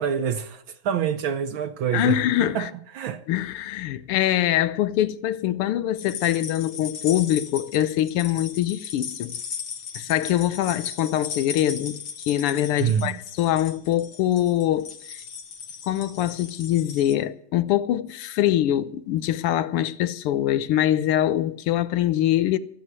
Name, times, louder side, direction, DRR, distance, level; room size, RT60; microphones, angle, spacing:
voice 1, 0.0-2.7 2.9-3.2 12.8-13.1, right 8 dB, 70° right, 1.6 m, -26 dB
voice 2, 1.9-2.7 3.3-9.4 9.9-15.2 15.9-22.6, left 12 dB, 90° left, 1.7 m, -24 dB
sound 1, 6.0-17.1, left 6 dB, 70° left, 2.3 m, -37 dB
14.0 x 7.2 x 9.5 m
omnidirectional pair, 2.4 m